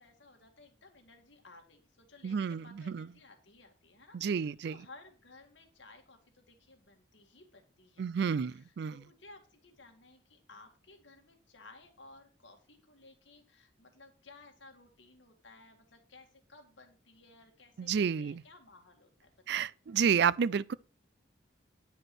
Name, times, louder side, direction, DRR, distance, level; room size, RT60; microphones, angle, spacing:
voice 1, 0.0-17.9 18.2-19.7, left 3 dB, 65° left, 2.0 m, -57 dB
voice 2, 2.2-3.1 4.1-4.8 8.0-9.0 17.8-18.4 19.5-20.7, right 7 dB, 55° right, 0.3 m, -30 dB
9.6 x 5.1 x 6.1 m
head